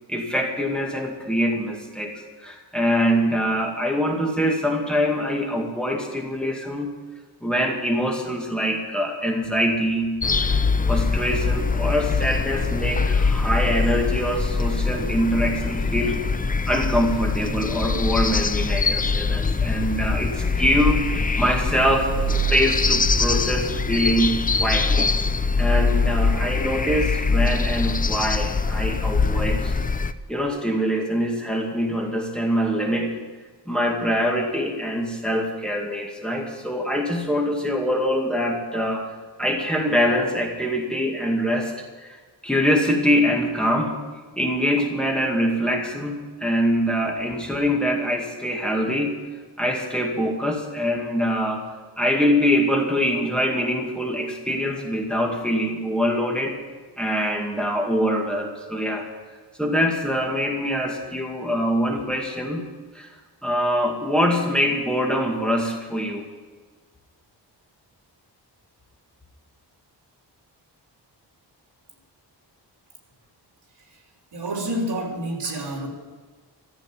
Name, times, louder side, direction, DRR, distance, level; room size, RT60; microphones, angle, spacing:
voice 1, 0.1-2.1 2.4-6.9 7.4-10.1 10.4-10.6 10.9-16.2 16.7-21.0 21.4-22.2 22.5-25.1 25.6-29.7 30.3-33.1 33.7-39.1 39.4-41.7 42.0-43.9 44.4-49.2 49.6-51.6 52.0-56.6 57.0-59.1 59.6-62.7 62.9-63.1 63.4-66.2, equal, ahead, 0 dB, 2.2 m, -24 dB
sound 1, 10.2-30.1, left 4 dB, 20° left, 0.5 m, -23 dB
sound 2, 21.7-24.6, right 7 dB, 35° right, 1.1 m, -28 dB
voice 2, 74.3-75.9, right 1 dB, 75° right, 0 dB, 3.5 m, -28 dB
14.5 x 8.5 x 9.9 m, 1.4 s
wide cardioid pair, 125°, 42 cm